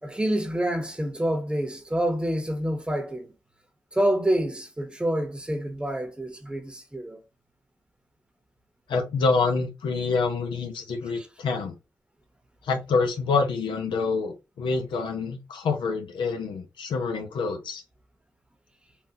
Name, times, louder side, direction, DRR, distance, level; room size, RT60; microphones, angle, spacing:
voice 1, 0.0-3.3 3.9-7.2 11.2-11.3, right 1 dB, 10° right, 0.9 m, -27 dB
voice 2, 8.9-11.7 12.6-17.8, left 4 dB, 90° left, 0.8 m, -27 dB
3.6 x 2.4 x 2.7 m
cardioid pair, 65°, 8 cm